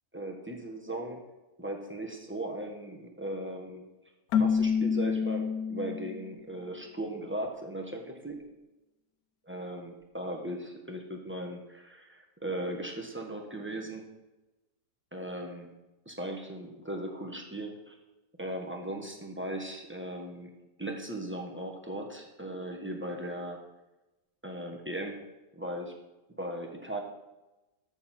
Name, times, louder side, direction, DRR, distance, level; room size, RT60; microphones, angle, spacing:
voice 1, 0.1-1.2 1.6-3.8 4.4-8.4 9.5-14.0 15.1-15.7 16.0-17.9 18.4-20.5 20.8-23.6 24.4-25.2 25.5-25.9 26.4-27.0, right 1 dB, 10° right, 1 dB, 1.3 m, -38 dB
Keyboard (musical), 4.3-6.3, left 6 dB, 80° left, 1.1 m, -28 dB
13.5 x 6.9 x 4.4 m, 1.0 s
omnidirectional pair, 1.6 m